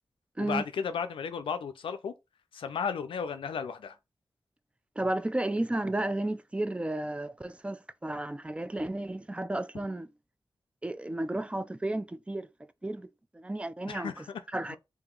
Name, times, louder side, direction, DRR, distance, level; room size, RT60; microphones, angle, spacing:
voice 1, 0.4-2.1 2.5-4.0 13.9-14.4 14.7-14.8, left 6 dB, 90° left, 0.4 m, -34 dB
voice 2, 5.0-10.1 10.8-12.5 12.8-13.1 13.3-14.3 14.5-14.8, right 1 dB, 15° right, 0.3 m, -33 dB
2.8 x 2.6 x 3.7 m
cardioid pair, 65°, 9 cm